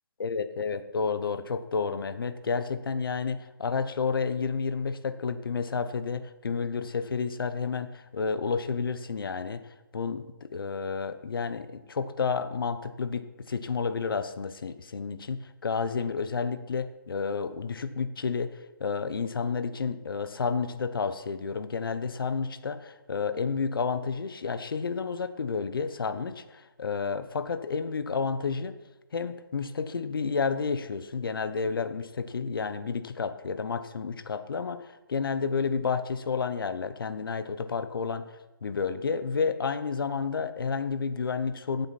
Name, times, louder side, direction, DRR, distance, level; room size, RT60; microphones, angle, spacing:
voice 1, 0.2-28.7 29.1-38.2 38.6-41.9, left 5 dB, 70° left, 12 dB, 1.0 m, -31 dB
15.0 x 8.0 x 4.2 m, 1.1 s
hypercardioid pair, 165°, 12 cm